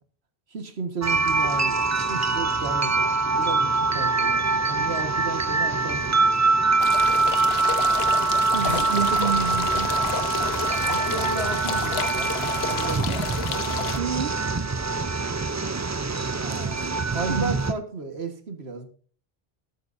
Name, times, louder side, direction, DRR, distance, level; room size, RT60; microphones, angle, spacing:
voice 1, 0.5-6.5 10.9-12.3 12.7-13.8 16.4-18.9, right 4 dB, 90° right, 1.8 m, -34 dB
sound 1, 1.0-17.7, right 3 dB, 30° right, 0.3 m, -24 dB
sound 2, 6.8-14.0, left 8 dB, 85° left, 1.1 m, -31 dB
voice 2, 8.5-9.9 14.0-14.4 17.3-17.5, right 7 dB, 65° right, 0.9 m, -28 dB
sound 3, 8.6-13.9, right 1 dB, 35° left, 6.5 m, -41 dB
20.5 x 8.8 x 2.6 m
omnidirectional pair, 1.0 m